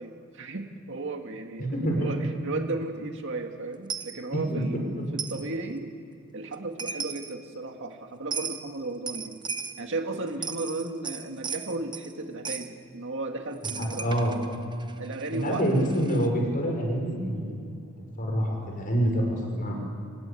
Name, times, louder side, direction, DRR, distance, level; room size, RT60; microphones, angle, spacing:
voice 1, 0.0-4.8 5.1-5.9 6.3-9.4 9.8-14.2 15.0-15.7, right 2 dB, 60° right, 4 dB, 2.0 m, -35 dB
voice 2, 1.6-2.2 4.5-4.6 13.6-14.3 15.3-17.6 18.2-19.8, equal, 40° left, 1 dB, 5.4 m, -27 dB
Coin (dropping), 3.9-4.2 5.2-5.4 6.5-6.6 6.8-7.3 8.3-8.6 9.1-9.8 10.3-12.1 12.5-12.7 13.6-16.3, right 6 dB, 20° right, 0.9 m, -36 dB
25.0 x 20.0 x 8.5 m, 2.3 s
head